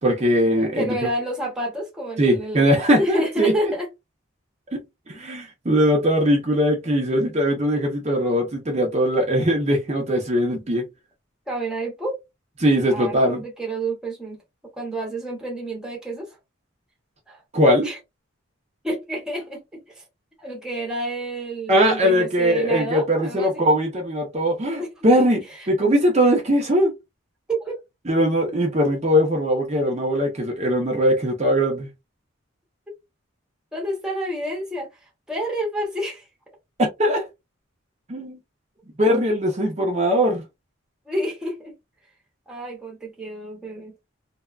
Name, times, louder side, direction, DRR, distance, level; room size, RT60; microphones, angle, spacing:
voice 1, 0.0-1.0 2.2-3.5 4.7-10.8 12.6-13.4 17.5-17.9 21.7-25.4 25.7-26.9 28.1-31.9 37.0-37.3 38.1-38.4 39.0-40.4, equal, 30° right, 0.6 m, -20 dB
voice 2, 0.7-3.9 11.5-12.2 12.9-14.4 14.8-16.4 17.3-17.4 17.8-18.0 18.8-20.0 20.4-23.7 24.6-24.9 25.5-25.7 27.5-27.8 33.7-34.9 35.3-36.3 41.1-41.8 42.5-43.9, right 1 dB, 5° right, 0.8 m, -29 dB
2.7 x 2.2 x 2.3 m
head